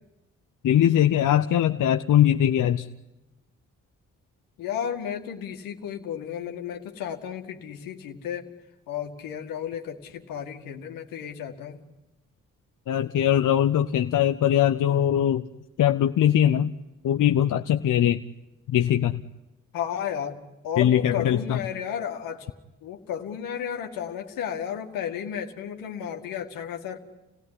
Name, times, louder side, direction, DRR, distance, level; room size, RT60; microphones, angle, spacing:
voice 1, 0.6-2.9 12.9-15.5 15.8-16.7 17.0-18.2 18.7-19.2 20.8-21.6, left 10 dB, 70° left, 8 dB, 0.9 m, -21 dB
voice 2, 4.6-8.5 8.9-11.8 19.7-22.5 22.8-27.0, left 8 dB, 90° left, 4 dB, 2.1 m, -33 dB
29.0 x 17.0 x 10.0 m, 0.99 s
supercardioid pair, 50°, 33 cm